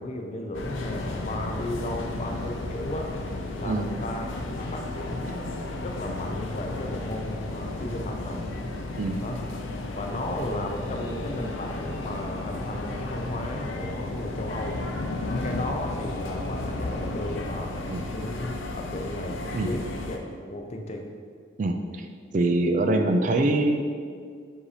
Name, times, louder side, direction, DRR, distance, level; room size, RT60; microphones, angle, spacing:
voice 1, 0.0-3.1 3.6-8.5 9.2-9.4 10.0-14.8 15.3-17.8 18.1-21.0 23.4-23.5, left 1 dB, 35° left, 3 dB, 0.5 m, -35 dB
sound 1, 0.5-20.2, left 2 dB, 80° left, 0.6 m, -33 dB
voice 2, 21.6-22.1 22.3-23.8, right 2 dB, 40° right, 5 dB, 0.3 m, -24 dB
7.3 x 2.7 x 4.9 m, 2.1 s
head